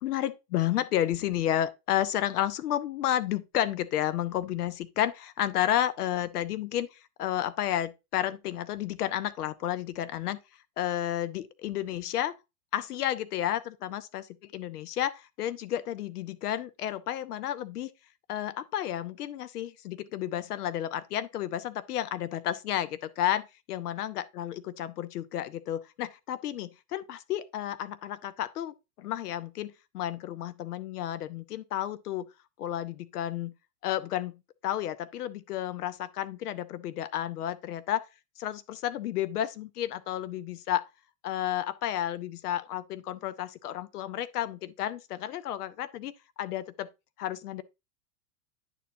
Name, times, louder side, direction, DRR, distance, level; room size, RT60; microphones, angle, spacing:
voice 1, 0.0-10.4 10.8-12.4 12.7-14.2 14.5-17.9 18.3-32.3 32.6-33.5 33.8-34.3 34.6-38.1 38.4-40.8 41.2-46.1 46.4-46.9 47.2-47.6, left 12 dB, 85° left, 0.8 m, -31 dB
9.9 x 4.4 x 2.6 m
hypercardioid pair, 115°, 45 cm